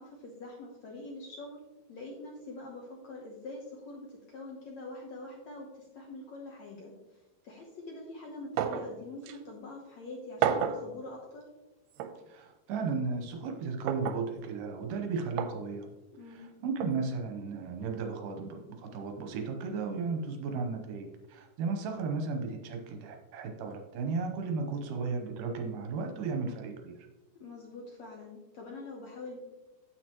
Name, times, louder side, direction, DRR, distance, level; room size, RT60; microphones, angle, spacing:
voice 1, 0.0-1.6 1.9-11.4 16.2-16.5 24.6-25.1 27.3-29.4, left 2 dB, 75° left, -1 dB, 1.6 m, -45 dB
sound 1, 8.6-8.9 9.3-9.4 10.4-10.9 12.0-12.2 13.9-14.2 15.4-15.6 16.8-17.0, right 9 dB, 90° right, 2.6 m, -30 dB
voice 2, 12.3-15.9 16.3-27.0, right 4 dB, 75° right, 4 dB, 2.1 m, -35 dB
9.1 x 8.1 x 3.0 m, 1.1 s
omnidirectional pair, 4.6 m